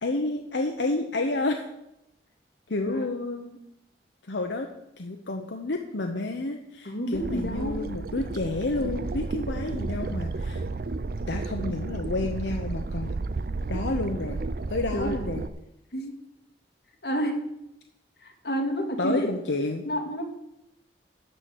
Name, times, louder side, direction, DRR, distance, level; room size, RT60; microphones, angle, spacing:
voice 1, 0.0-1.7 2.7-3.6 4.2-4.7 5.0-10.6 11.3-13.1 13.7-14.4 14.7-15.4 19.0-19.8, left 2 dB, 85° left, 3 dB, 0.9 m, -30 dB
voice 2, 6.8-7.8 14.9-15.2 15.9-16.1 17.0-17.4 18.2-19.3 19.8-20.2, equal, 65° left, 2 dB, 2.1 m, -29 dB
sound 1, 7.1-15.5, right 3 dB, 55° right, 0.5 m, -32 dB
12.5 x 4.5 x 8.3 m, 0.84 s
head